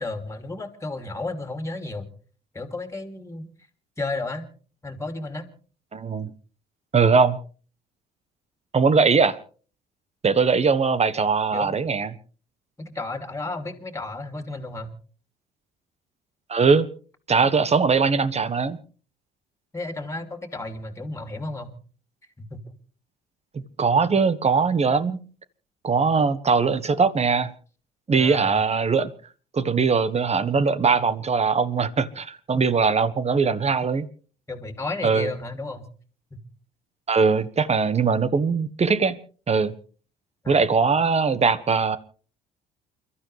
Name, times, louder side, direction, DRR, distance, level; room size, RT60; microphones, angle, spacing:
voice 1, 0.0-2.1 2.5-3.5 4.0-4.5 4.8-5.5 11.5-11.7 12.8-14.9 19.7-21.8 22.4-22.8 26.2-26.3 28.1-28.6 34.5-35.9 36.3-36.4 40.4-40.6, left 2 dB, 15° left, 3.2 m, -33 dB
voice 2, 5.9-6.3 6.9-7.4 8.7-9.4 10.2-12.1 16.5-16.9 17.3-18.8 23.5-25.2 25.8-27.5 28.1-29.1 29.5-34.1 35.0-35.3 37.1-39.2 39.5-39.7 40.5-42.0, right 5 dB, 30° right, 1.4 m, -21 dB
29.0 x 13.0 x 3.4 m
hypercardioid pair, 60°, 21 cm